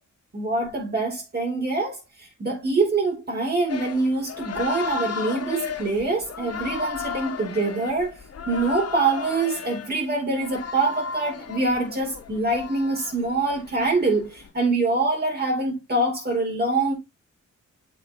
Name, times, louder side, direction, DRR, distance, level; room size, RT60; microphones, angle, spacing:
voice 1, 0.3-2.0 2.4-8.2 8.5-16.9, right 3 dB, 35° right, 5.9 m, -24 dB
sound 1, 3.7-14.5, left 6 dB, 50° left, 1.8 m, -35 dB
7.8 x 6.2 x 4.5 m
wide cardioid pair, 175°, 30 cm